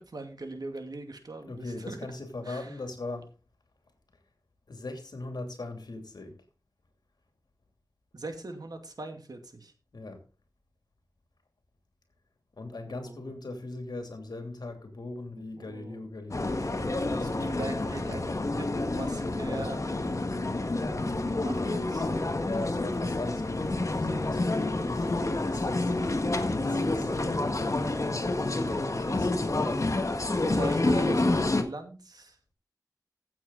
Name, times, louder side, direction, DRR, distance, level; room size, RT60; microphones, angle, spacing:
voice 1, 0.0-2.0 2.5-2.8 8.1-9.7 12.8-13.3 15.6-16.0 17.1-18.3 18.6-19.8 21.3-22.1 28.7-29.7 30.5-32.4, right 2 dB, 70° right, 2.5 m, -41 dB
voice 2, 1.4-3.3 4.7-6.4 9.9-10.2 12.6-17.3 22.4-29.9 30.2-30.5, left 2 dB, 85° left, 2.9 m, -40 dB
sound 1, 16.3-31.6, left 2 dB, 50° left, 1.6 m, -28 dB
15.0 x 7.5 x 4.0 m
wide cardioid pair, 70°, 7 cm